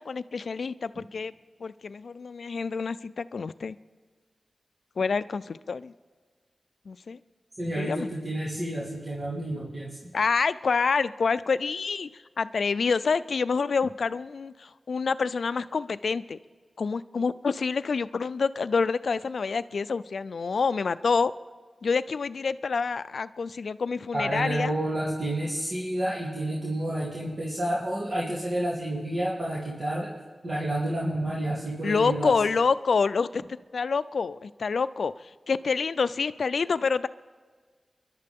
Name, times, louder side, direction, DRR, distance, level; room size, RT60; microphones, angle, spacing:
voice 1, 0.0-1.3 1.6-3.8 5.0-5.9 6.9-7.2 7.8-8.1 10.1-12.1 12.4-16.4 16.8-21.3 21.8-24.7 31.8-33.4 33.7-35.1 35.5-37.1, left 5 dB, 85° left, 15 dB, 0.4 m, -27 dB
voice 2, 7.6-10.0 24.1-30.1 30.4-32.3, right 1 dB, 55° right, -7 dB, 3.0 m, -30 dB
29.0 x 11.5 x 3.6 m, 1.5 s
cardioid pair, 55°, 0 cm